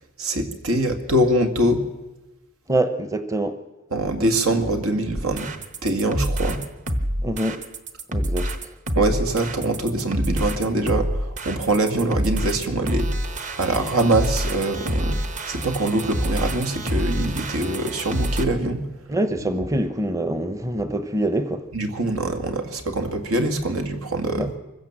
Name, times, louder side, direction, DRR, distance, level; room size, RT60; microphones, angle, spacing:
voice 1, 0.2-1.8 3.9-5.5 5.8-6.6 8.9-13.1 13.6-15.2 15.5-18.8 21.7-24.5, right 1 dB, 85° right, 2.3 m, -23 dB
voice 2, 2.7-3.6 7.2-7.6 8.1-8.5 19.1-21.6 24.4-24.5, right 1 dB, 15° right, 0.8 m, -25 dB
sound 1, 5.1-18.5, equal, 35° right, 1.1 m, -27 dB
24.0 x 15.5 x 7.4 m
head